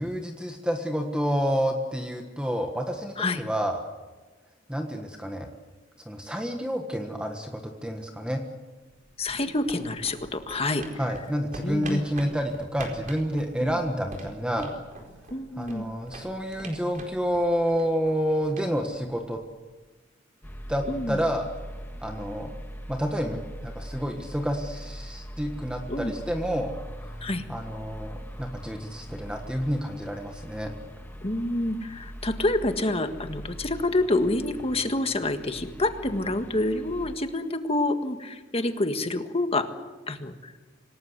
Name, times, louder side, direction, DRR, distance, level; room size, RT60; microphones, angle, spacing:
voice 1, 0.0-3.8 4.7-5.5 6.1-8.4 11.0-14.7 15.6-19.4 20.7-21.5 22.0-22.5 22.9-26.7 27.5-30.7, equal, 5° right, 4 dB, 1.4 m, -29 dB
sound 1, 8.8-19.6, right 2 dB, 45° right, 4.5 m, -45 dB
voice 2, 9.2-10.8 11.6-12.0 13.6-13.8 15.3-15.8 20.9-21.2 25.9-26.1 27.2-27.4 31.2-39.7 40.1-40.5, left 2 dB, 30° left, 7 dB, 1.7 m, -27 dB
sound 2, 20.4-37.2, equal, 10° left, 1.7 m, -41 dB
26.5 x 18.5 x 8.1 m, 1.3 s
head